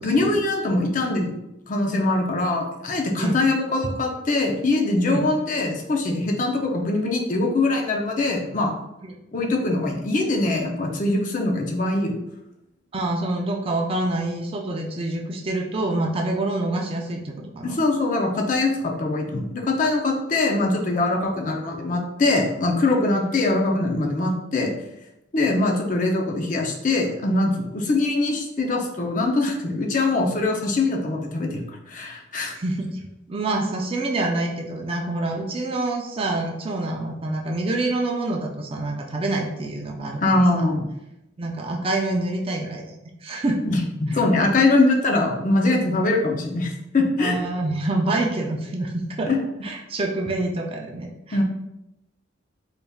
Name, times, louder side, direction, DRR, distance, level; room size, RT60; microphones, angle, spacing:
voice 1, 0.0-1.4 1.7-8.7 9.3-12.2 17.6-24.7 25.3-32.6 40.2-40.8 43.7-47.4 49.3-49.4 51.3-51.4, left 2 dB, 40° left, 1 dB, 0.6 m, -22 dB
voice 2, 12.9-17.8 21.2-21.3 32.5-33.0 33.3-40.7 41.4-42.9 43.2-43.6 44.1-44.2 47.2-49.3 49.6-51.4, right 2 dB, 30° right, 1 dB, 0.4 m, -26 dB
4.0 x 3.4 x 2.3 m, 0.89 s
head